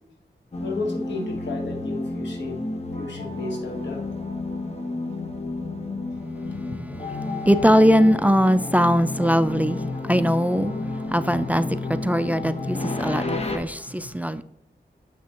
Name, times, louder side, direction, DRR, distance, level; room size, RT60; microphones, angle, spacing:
sound 1, 0.5-13.6, left 2 dB, 35° left, 1.1 m, -31 dB
voice 1, 0.6-2.6 3.0-4.1 6.5-6.8 13.9-14.0, left 3 dB, 90° left, 1.4 m, -33 dB
voice 2, 7.5-10.7 11.1-14.4, equal, 10° right, 0.4 m, -21 dB
7.2 x 6.0 x 2.9 m
cardioid pair, 60°, 18 cm